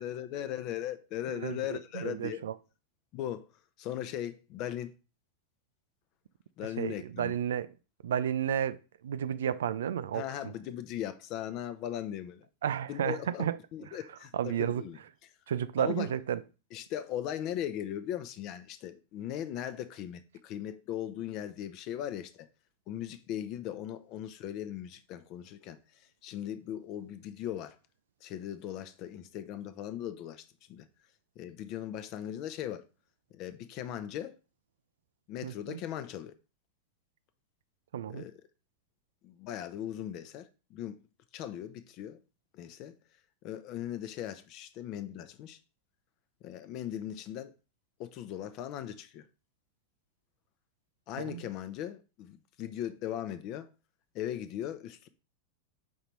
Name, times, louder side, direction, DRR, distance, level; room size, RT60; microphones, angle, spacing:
voice 1, 0.0-2.4 3.1-3.5 3.8-4.9 6.6-7.4 10.1-12.5 12.9-15.0 15.8-16.1 16.7-22.5 22.9-25.8 26.2-27.8 28.2-30.4 30.7-30.9 31.4-32.8 33.3-34.3 35.3-36.3 38.1-38.3 39.2-41.0 41.3-42.2 42.5-43.0 43.4-45.6 46.4-47.5 48.0-49.2 51.1-53.7 54.1-55.1, left 11 dB, 40° left, 0.6 m, -38 dB
voice 2, 1.3-2.5 6.8-7.7 8.0-8.8 9.0-10.5 12.6-13.6 14.3-14.8 15.5-16.4 35.4-35.8 37.9-38.2 51.2-51.4, right 9 dB, 60° right, 0.4 m, -32 dB
5.4 x 3.9 x 4.5 m
figure-of-eight pair, 90°, 0 cm